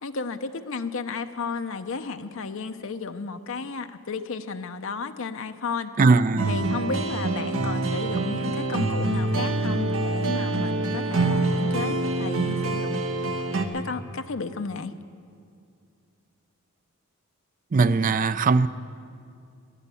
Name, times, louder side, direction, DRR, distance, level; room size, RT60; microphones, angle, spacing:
voice 1, 0.0-6.0 6.5-13.0 13.7-14.9, left 4 dB, 60° left, 0.6 m, -33 dB
voice 2, 6.0-6.6 17.7-18.7, right 4 dB, 35° right, 0.4 m, -20 dB
sound 1, 6.4-13.7, right 2 dB, 65° right, 1.1 m, -26 dB
18.0 x 11.0 x 6.9 m
head